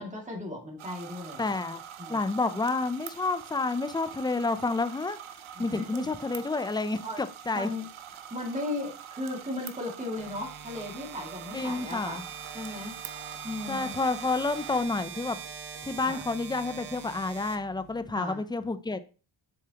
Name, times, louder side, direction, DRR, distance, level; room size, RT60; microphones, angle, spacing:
voice 1, 0.0-1.6 2.0-2.3 5.5-6.1 7.0-7.2 7.5-7.9 8.3-12.3 12.5-12.9 13.4-14.0 16.1-16.3 18.1-18.4, left 2 dB, 15° right, 2.4 m, -36 dB
sound 1, 0.8-14.8, right 9 dB, 80° right, 0.8 m, -45 dB
voice 2, 1.4-1.8 2.1-5.2 5.6-7.7 11.5-12.2 13.7-15.4 15.8-19.0, left 3 dB, 10° left, 0.5 m, -29 dB
sound 2, 10.2-18.2, right 8 dB, 55° right, 1.1 m, -43 dB
7.3 x 6.6 x 2.9 m
wide cardioid pair, 105°, 48 cm